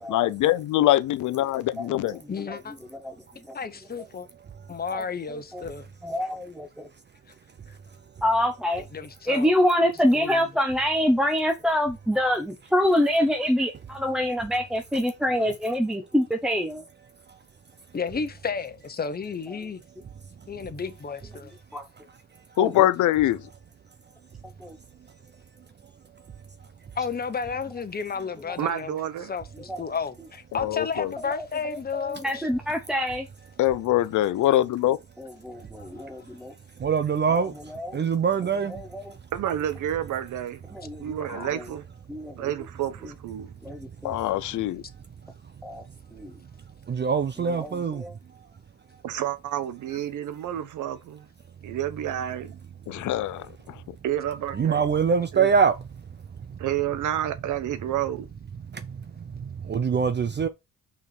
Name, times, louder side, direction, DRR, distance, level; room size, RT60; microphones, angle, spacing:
voice 1, 0.1-2.2 22.6-23.5 30.5-31.1 33.6-35.0 41.3-41.5 44.0-44.8 52.9-53.8, left 14 dB, 80° left, 0.7 m, -23 dB
voice 2, 1.8-2.1 2.4-2.6 3.0-3.1 3.5-3.6 4.9-5.0 5.5-5.6 6.0-6.9 8.2-8.8 9.3-16.8 21.7-21.9 22.6-22.7 24.6-24.8 29.7-29.8 31.9-33.3 35.2-36.5 37.7-38.0 38.9-39.1 40.7-41.2 41.5-41.6 42.1-42.5 43.6-44.1 45.6-45.8 46.1-46.3 47.6-48.1, left 1 dB, ahead, 1.1 m, -26 dB
voice 3, 2.3-2.7 3.5-4.3 4.7-5.9 8.9-9.5 10.1-10.4 17.9-19.8 20.5-21.5 27.0-28.9 29.3-32.5 35.8-35.9, left 5 dB, 30° left, 1.2 m, -32 dB
voice 4, 28.6-29.3 39.3-40.6 41.0-41.8 42.3-43.5 49.0-51.3 51.6-52.5 54.0-54.8 55.3-55.5 56.6-58.3, right 11 dB, 80° right, 1.1 m, -30 dB
voice 5, 36.8-37.5 37.9-38.7 46.9-48.0 54.3-55.8 59.7-60.5, right 6 dB, 35° right, 0.7 m, -23 dB
5.8 x 4.6 x 6.1 m
cardioid pair, 90°, 30 cm